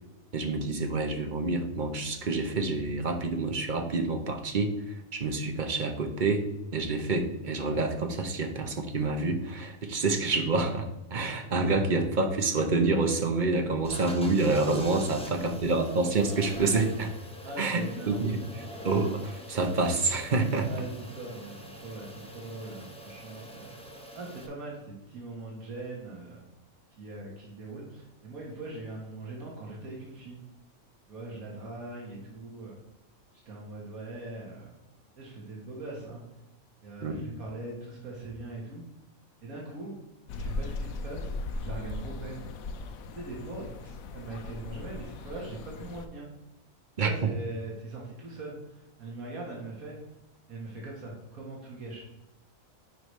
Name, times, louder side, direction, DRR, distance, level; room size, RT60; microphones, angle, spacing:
voice 1, 0.3-6.4 6.7-17.1 17.6-18.4 18.8-20.7 37.0-37.2 47.0-47.1, right 3 dB, 40° right, 5 dB, 0.8 m, -27 dB
sound 1, 13.8-24.5, equal, 5° left, 0.8 m, -45 dB
voice 2, 17.4-18.3 20.7-23.7 24.1-26.4 27.0-30.4 31.1-32.8 33.5-34.7 35.2-36.2 36.8-38.8 39.4-39.9 40.4-42.4 43.1-46.3 47.0-50.0 50.5-52.0, right 2 dB, 85° right, -3 dB, 1.8 m, -41 dB
sound 2, 40.3-46.1, left 2 dB, 80° left, 1.1 m, -38 dB
9.3 x 4.9 x 3.1 m, 0.97 s
omnidirectional pair, 1.4 m